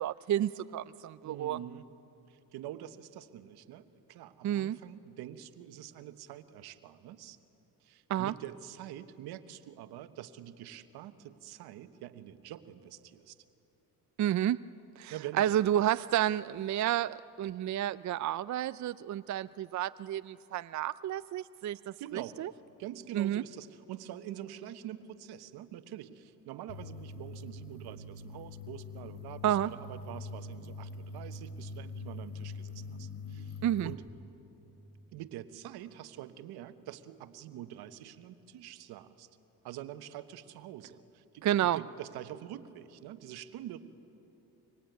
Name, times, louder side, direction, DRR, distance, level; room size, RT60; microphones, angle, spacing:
voice 1, 0.0-1.6 4.4-4.8 8.1-8.3 14.2-14.6 15.0-22.5 23.1-23.4 29.4-29.7 33.6-33.9 41.4-41.8, right 12 dB, 50° right, 14 dB, 0.5 m, -30 dB
voice 2, 1.2-1.8 2.3-7.4 7.8-13.4 15.1-15.5 22.0-22.4 22.8-34.0 35.1-39.3 39.6-43.8, right 12 dB, 80° right, 10 dB, 1.3 m, -45 dB
sound 1, 26.7-33.9, left 3 dB, 80° left, 5.1 m, -43 dB
25.0 x 25.0 x 9.3 m, 2.9 s
supercardioid pair, 65°, 38 cm